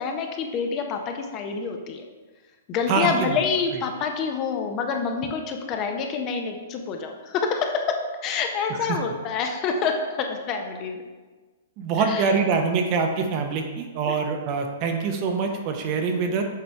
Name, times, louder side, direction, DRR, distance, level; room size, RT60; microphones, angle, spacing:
voice 1, 0.0-2.0 2.7-11.0 12.0-12.4 14.0-14.2, left 5 dB, 35° left, 4 dB, 0.7 m, -27 dB
voice 2, 2.9-3.4 8.7-9.0 11.8-16.4, right 5 dB, 40° right, 4 dB, 0.7 m, -24 dB
6.7 x 3.3 x 4.4 m, 1.3 s
hypercardioid pair, 135°, 0 cm